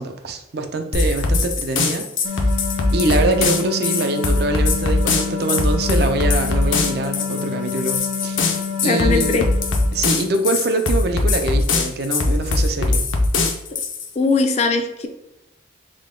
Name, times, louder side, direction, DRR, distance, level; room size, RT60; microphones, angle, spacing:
voice 1, 0.0-2.4 2.9-8.4 8.8-9.5 9.9-13.0, right 2 dB, 55° right, 6 dB, 0.4 m, -24 dB
sound 1, 0.9-14.1, left 3 dB, 80° left, 0.6 m, -21 dB
sound 2, 2.2-10.4, left 6 dB, 90° right, 0.7 m, -29 dB
voice 2, 8.8-9.5 13.3-13.5 14.2-15.1, left 3 dB, 35° left, 5 dB, 0.3 m, -20 dB
3.7 x 2.2 x 3.6 m, 0.90 s
head